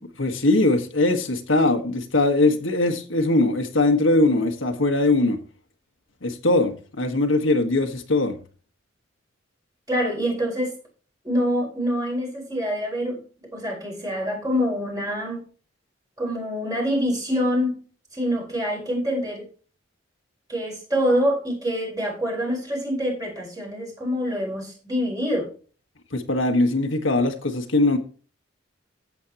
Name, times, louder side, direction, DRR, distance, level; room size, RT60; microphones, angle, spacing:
voice 1, 0.2-5.4 6.2-8.4 26.1-28.0, left 2 dB, 85° left, 1.6 m, -21 dB
voice 2, 9.9-10.8 11.2-13.2 13.5-15.4 16.2-17.8 18.1-19.4 20.5-25.5, equal, 20° right, 5.2 m, -25 dB
14.5 x 7.7 x 3.0 m
head